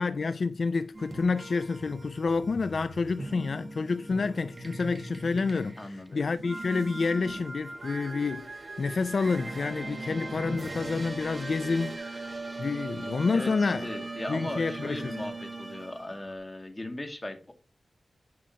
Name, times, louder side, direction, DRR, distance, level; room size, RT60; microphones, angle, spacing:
voice 1, 0.0-12.0 12.6-13.9 14.3-15.3, left 4 dB, 65° left, 0.4 m, -29 dB
sound 1, 0.9-16.4, right 2 dB, 35° right, 1.4 m, -40 dB
voice 2, 5.8-6.2 13.3-17.5, left 1 dB, 25° left, 2.1 m, -38 dB
sound 2, 6.3-12.0, right 3 dB, 50° right, 0.8 m, -45 dB
10.5 x 5.4 x 2.8 m
wide cardioid pair, 70°, 0 cm